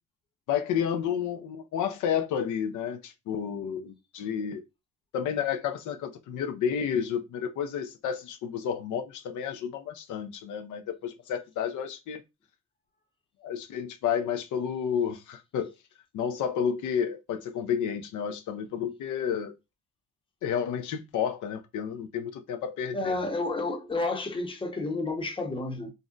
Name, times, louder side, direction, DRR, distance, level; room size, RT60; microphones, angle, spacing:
voice 1, 0.5-4.6 5.1-12.2 13.4-15.7 16.1-19.5 20.4-23.3, left 8 dB, 80° left, 0.5 m, -31 dB
voice 2, 22.9-25.9, left 2 dB, 15° left, 0.7 m, -31 dB
2.5 x 2.1 x 3.7 m
cardioid pair, 90°, 30 cm